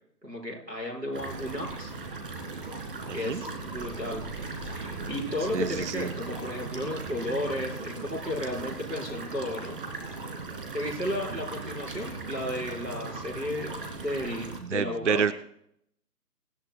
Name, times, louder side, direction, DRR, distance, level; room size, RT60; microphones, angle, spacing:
voice 1, 0.2-1.9 3.1-4.2 4.6-9.8 10.7-15.2, left 1 dB, 85° right, -1 dB, 5.2 m, -34 dB
sound 1, 1.1-14.6, right 3 dB, 35° right, 2.5 m, -38 dB
voice 2, 3.1-3.4 5.5-6.1 14.6-15.3, right 6 dB, 50° right, 14 dB, 0.5 m, -28 dB
24.0 x 12.5 x 2.3 m, 0.72 s
figure-of-eight pair, 145°, 48 cm